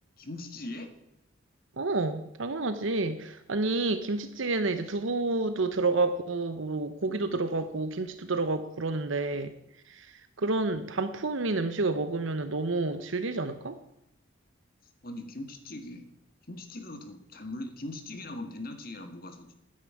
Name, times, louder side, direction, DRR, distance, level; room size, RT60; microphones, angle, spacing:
voice 1, 0.2-0.9 7.0-7.2 15.0-16.1 16.5-19.5, left 2 dB, 45° left, 7 dB, 1.8 m, -40 dB
voice 2, 1.8-9.5 9.9-10.1 10.4-13.8, right 3 dB, 70° right, 10 dB, 0.9 m, -29 dB
9.8 x 9.6 x 9.7 m, 0.80 s
head